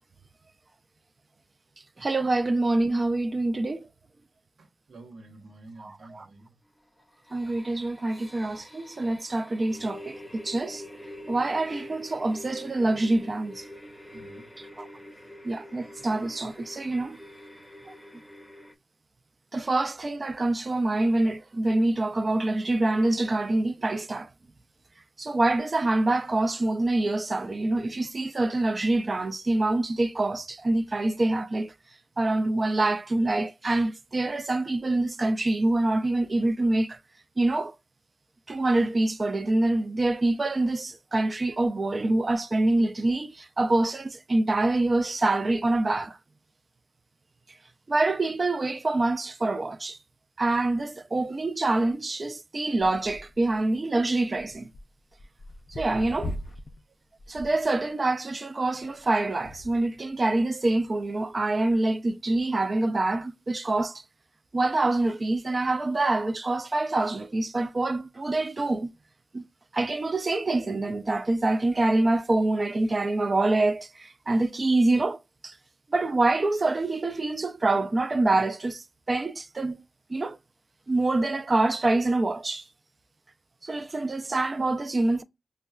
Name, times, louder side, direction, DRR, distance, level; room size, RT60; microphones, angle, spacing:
voice 1, 2.0-3.9 5.8-6.3 7.3-10.8 11.3-13.6 14.8-14.9 15.4-17.2 17.9-18.0 19.5-24.3 25.2-31.7 32.2-37.0 37.4-37.8 38.5-46.2 47.9-50.0 50.4-54.7 55.7-56.3 57.3-64.0 64.5-68.9 69.3-69.4 69.7-75.2 75.4-75.5 75.9-79.8 80.1-80.4 80.9-82.6 83.6-85.2, right 2 dB, 40° right, 0.4 m, -26 dB
voice 2, 4.6-6.6 14.1-14.5 15.1-15.4, right 2 dB, 65° right, 0.8 m, -49 dB
sound 1, 7.0-18.7, left 1 dB, 5° left, 0.7 m, -46 dB
sound 2, 52.8-53.6 54.4-56.8 57.2-57.6 58.7-60.0 60.8-60.9, left 1 dB, 55° left, 0.4 m, -40 dB
5.2 x 2.2 x 2.3 m
cardioid pair, 65°, 0 cm